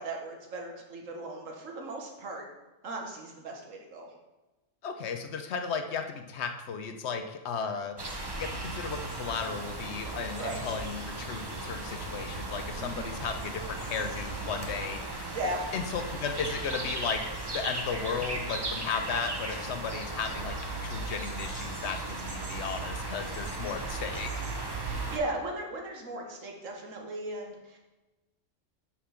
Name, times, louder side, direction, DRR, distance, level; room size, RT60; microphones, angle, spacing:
voice 1, 0.0-2.4 2.8-4.1 10.3-10.6 12.7-13.1 15.3-15.7 24.8-27.8, right 2 dB, 80° right, 1 dB, 1.5 m, -37 dB
voice 2, 4.8-8.0 8.4-15.0 15.7-17.2 17.5-20.6 20.8-24.4, left 6 dB, 60° left, 7 dB, 0.9 m, -35 dB
sound 1, 8.0-25.2, right 2 dB, 25° right, 0.6 m, -36 dB
5.9 x 4.9 x 5.7 m, 1.1 s
omnidirectional pair, 1.3 m